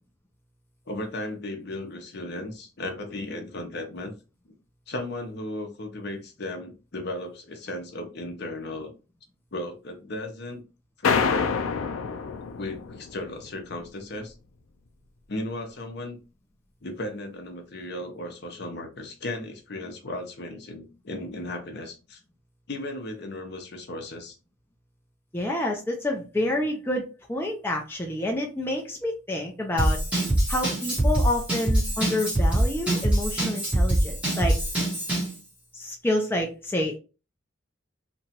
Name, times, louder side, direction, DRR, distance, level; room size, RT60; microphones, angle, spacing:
voice 1, 0.9-4.1 4.5-4.6 4.9-8.9 9.5-10.6 11.0-11.5 12.6-14.3 15.3-16.2 16.8-22.2 22.7-24.4, left 1 dB, 50° left, 4 dB, 0.7 m, -35 dB
sound 1, 11.0-13.5, left 5 dB, 90° left, 0.4 m, -27 dB
voice 2, 25.3-27.0 27.3-30.0 30.5-34.5 35.7-37.0, left 1 dB, 10° left, 0 dB, 0.4 m, -28 dB
Drum kit / Drum, 29.8-35.4, right 1 dB, 5° right, 1.0 m, -24 dB
2.9 x 2.3 x 2.8 m, 0.31 s
head